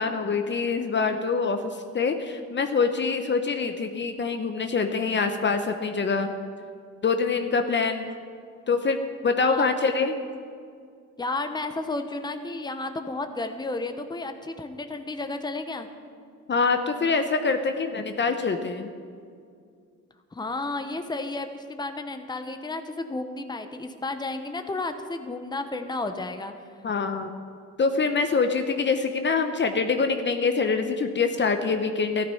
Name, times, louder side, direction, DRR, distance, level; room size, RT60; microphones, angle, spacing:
voice 1, 0.0-6.3 7.0-8.1 8.7-9.0 9.2-10.2 16.5-18.9 26.8-27.3 27.8-32.3, left 4 dB, 40° left, 7 dB, 0.9 m, -25 dB
voice 2, 9.4-9.9 11.2-15.9 20.3-26.5, left 2 dB, 15° left, 7 dB, 1.0 m, -32 dB
13.5 x 12.0 x 5.6 m, 2.2 s
cardioid pair, 90°, 30 cm